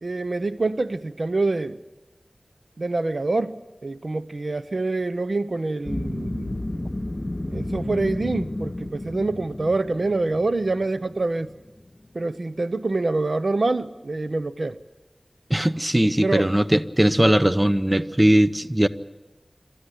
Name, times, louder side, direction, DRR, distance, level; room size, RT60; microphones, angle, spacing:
voice 1, 0.0-1.8 2.8-6.6 7.5-11.5 12.1-14.8 16.2-16.5, right 2 dB, 70° right, 0.7 m, -26 dB
sound 1, 5.8-12.1, left 1 dB, 30° left, 2.5 m, -32 dB
voice 2, 15.5-18.9, right 1 dB, 20° right, 0.8 m, -19 dB
28.0 x 13.5 x 10.0 m
wide cardioid pair, 55°, 0 cm